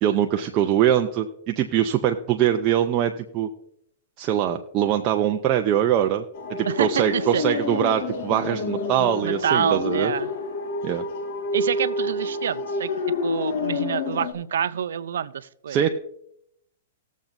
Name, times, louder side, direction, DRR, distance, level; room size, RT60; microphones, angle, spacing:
voice 1, 0.0-3.5 4.2-6.2 6.5-10.1 10.8-11.0 15.7-15.9, right 10 dB, 35° right, 4 dB, 0.6 m, -22 dB
sound 1, 6.3-14.3, left 3 dB, 55° left, 1.8 m, -28 dB
voice 2, 9.2-10.3 11.5-12.9 13.2-15.8, right 8 dB, 80° right, 14 dB, 0.5 m, -27 dB
20.0 x 7.3 x 2.6 m, 0.75 s
hypercardioid pair, 140°, 0 cm